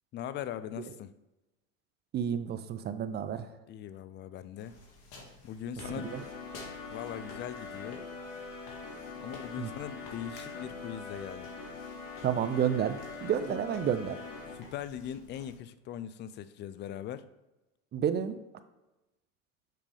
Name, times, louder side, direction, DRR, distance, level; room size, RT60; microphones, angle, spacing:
voice 1, 0.1-1.1 3.7-4.8 5.4-6.1 6.9-8.0 9.2-11.5 13.5-13.6 14.5-17.3, left 10 dB, 30° left, 14 dB, 0.4 m, -40 dB
voice 2, 2.1-3.5 6.1-6.2 9.6-9.7 12.2-14.2 17.9-18.4, right 8 dB, 25° right, 11 dB, 0.5 m, -30 dB
sound 1, 4.6-15.6, left 2 dB, 60° left, 2.2 m, -53 dB
sound 2, 5.8-14.5, left 4 dB, 80° left, 1.9 m, -43 dB
7.5 x 5.2 x 3.4 m, 1.0 s
hypercardioid pair, 100°, 38 cm